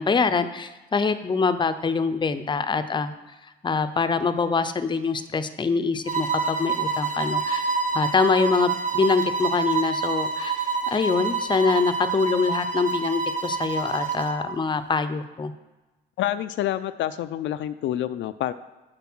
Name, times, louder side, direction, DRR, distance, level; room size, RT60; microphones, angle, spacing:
voice 1, 0.0-3.1 3.6-15.5, left 4 dB, 25° left, 10 dB, 0.6 m, -24 dB
sound 1, 6.1-14.4, right 5 dB, 40° right, 1.2 m, -27 dB
voice 2, 16.2-18.5, left 12 dB, 75° left, 11 dB, 0.4 m, -27 dB
7.1 x 5.3 x 6.0 m, 1.1 s
cardioid pair, 90°, 20 cm